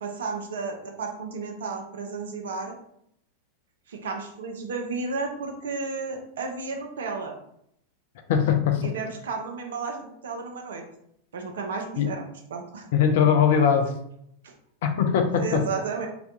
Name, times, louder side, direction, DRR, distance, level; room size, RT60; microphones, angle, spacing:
voice 1, 0.0-2.8 3.9-7.4 8.8-10.8 11.3-12.2 12.5-12.9 14.4-14.5 15.4-16.1, right 4 dB, 60° right, 3 dB, 0.5 m, -33 dB
voice 2, 8.3-8.9 12.0-12.1 12.9-13.9 14.8-15.6, left 7 dB, 55° left, 5 dB, 0.4 m, -21 dB
2.4 x 2.2 x 2.7 m, 0.72 s
figure-of-eight pair, 90°, 0 cm